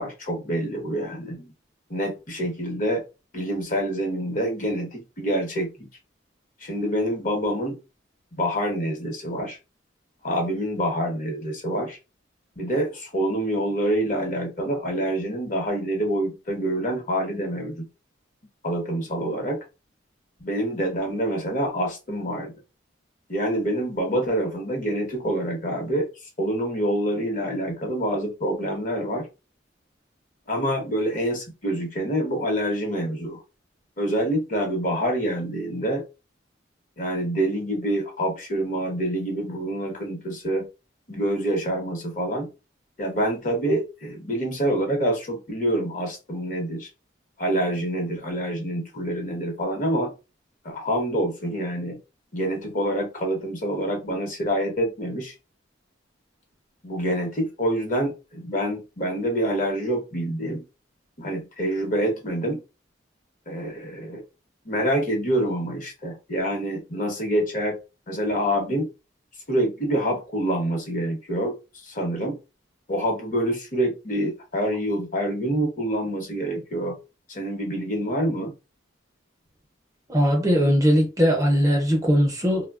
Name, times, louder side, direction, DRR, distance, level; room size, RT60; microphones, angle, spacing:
voice 1, 0.0-1.5 1.9-3.0 3.3-5.9 6.6-7.8 8.4-9.6 10.2-12.0 12.6-17.9 18.6-19.6 20.4-22.5 23.3-26.1 26.4-29.3 30.5-33.4 34.0-36.0 37.0-40.7 41.1-42.5 43.0-46.9 47.4-50.1 50.6-52.0 52.3-55.3 56.8-60.6 61.2-62.6 63.5-64.2 64.6-67.8 68.1-68.9 69.5-71.6 71.8-72.4 72.9-77.0 77.3-78.5, right 1 dB, 40° left, 0.9 m, -26 dB
voice 2, 80.1-82.7, equal, 15° right, 0.6 m, -20 dB
3.2 x 2.1 x 2.3 m
head